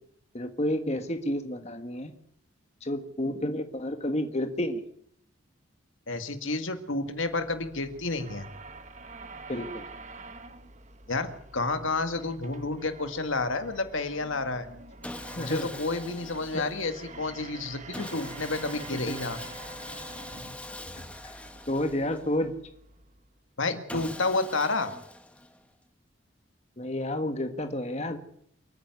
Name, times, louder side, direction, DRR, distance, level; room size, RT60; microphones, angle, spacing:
voice 1, 0.3-2.1 2.8-4.8 9.5-9.8 15.4-15.7 16.5-16.7 18.9-19.2 21.2-21.3 21.7-22.5 26.8-28.2, left 1 dB, 30° left, 7 dB, 1.5 m, -30 dB
voice 2, 6.1-8.4 11.1-14.7 15.3-19.4 23.6-24.9, left 3 dB, 75° left, 8 dB, 2.1 m, -30 dB
sound 1, 7.1-23.4, right 3 dB, 35° right, 1.3 m, -47 dB
Sawing, 15.0-17.1 17.9-22.5 23.9-25.7, left 1 dB, 5° left, 1.4 m, -42 dB
28.5 x 9.7 x 9.6 m, 0.68 s
head